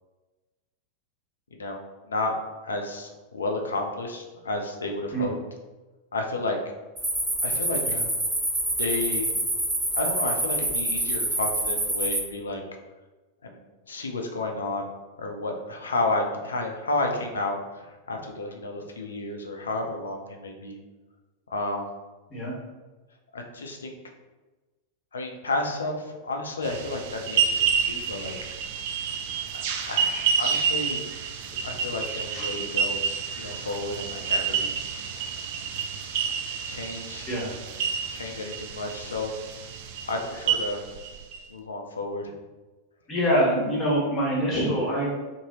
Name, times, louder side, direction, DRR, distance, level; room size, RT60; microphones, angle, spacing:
voice 1, 2.6-5.4 6.1-6.6 7.4-7.8 8.7-9.3 9.9-12.6 13.4-14.9 15.2-20.8 21.5-21.9 23.3-23.9 25.1-28.3 29.5-31.0 31.6-34.7 36.6-37.3 38.1-39.3 40.1-40.8 41.5-42.3, left 2 dB, 70° left, 3 dB, 0.4 m, -31 dB
sound 1, 7.0-12.2, right 1 dB, 10° right, 0.9 m, -26 dB
sound 2, 26.6-41.4, right 6 dB, 50° right, 0.3 m, -29 dB
voice 2, 43.1-45.1, equal, 25° left, -6 dB, 1.3 m, -25 dB
2.7 x 2.6 x 2.9 m, 1.2 s
figure-of-eight pair, 90°, 0 cm